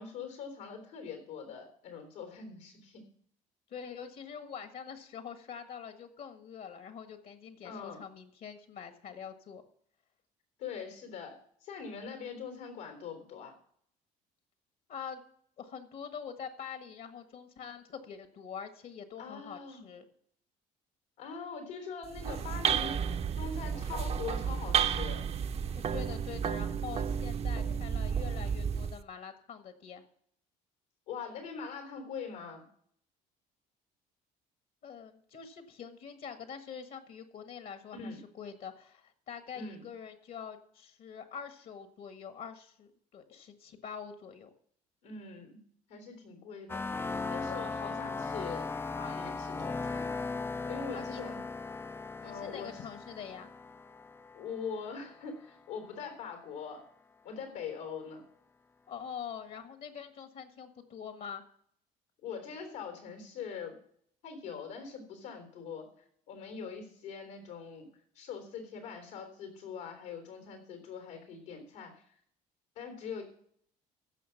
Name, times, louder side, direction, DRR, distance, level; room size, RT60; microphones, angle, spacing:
voice 1, 0.0-3.0 7.6-8.0 10.6-11.3 11.6-13.5 19.2-19.8 21.2-23.0 23.4-25.2 31.1-32.7 37.9-38.2 39.5-39.8 45.0-45.6 45.9-46.9 47.3-48.7 49.0-50.2 50.6-51.4 52.2-52.8 54.3-56.8 57.2-58.2 62.2-63.8 64.2-65.9 66.3-67.9 68.2-72.0 72.8-73.2, left 6 dB, 90° left, 4 dB, 3.6 m, -42 dB
voice 2, 3.7-9.6 14.9-15.2 15.6-20.0 25.7-30.0 34.8-44.5 50.9-51.2 52.2-53.5 58.9-61.4, left 7 dB, 60° left, 8 dB, 1.6 m, -45 dB
sound 1, 22.0-29.0, right 7 dB, 40° right, 0.7 m, -32 dB
sound 2, 46.7-55.3, left 3 dB, 15° left, 0.3 m, -38 dB
15.5 x 6.3 x 5.8 m, 0.64 s
supercardioid pair, 80°, 16 cm